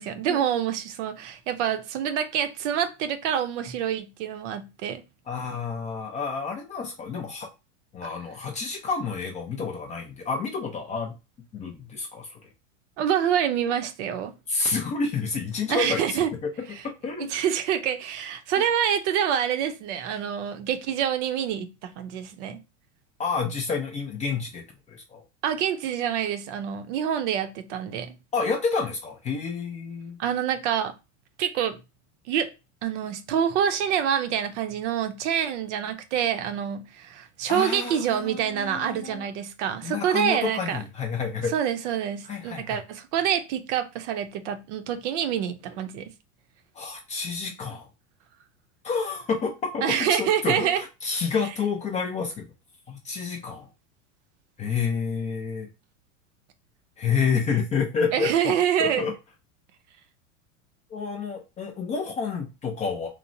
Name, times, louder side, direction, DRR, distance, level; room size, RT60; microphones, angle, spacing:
voice 1, 0.0-5.0 13.0-14.3 15.7-16.3 17.3-22.6 25.4-28.2 30.2-30.9 31.4-31.8 32.3-32.5 32.8-40.8 41.5-46.1 49.8-50.8 58.1-59.0, right 9 dB, 65° right, 0.6 m, -26 dB
voice 2, 5.3-7.5 7.9-11.1 11.5-12.4 14.5-16.5 16.8-17.3 18.6-18.7 23.2-25.2 28.3-30.2 37.5-39.3 39.8-41.5 42.2-42.8 46.8-47.9 48.8-49.8 50.1-52.4 52.9-53.7 54.6-55.7 57.0-58.5 58.8-59.1 60.9-63.1, left 5 dB, 20° left, 0.3 m, -29 dB
3.0 x 2.0 x 2.5 m
hypercardioid pair, 115°, 38 cm